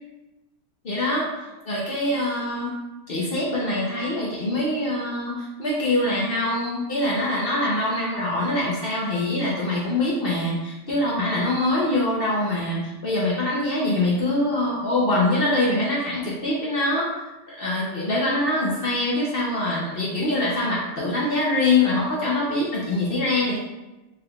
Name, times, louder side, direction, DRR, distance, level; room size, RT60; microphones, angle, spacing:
voice 1, 0.8-1.3 1.7-2.7 3.1-17.1 17.5-23.6, left 2 dB, 65° left, -5 dB, 0.5 m, -24 dB
4.8 x 3.5 x 2.3 m, 1.1 s
omnidirectional pair, 1.9 m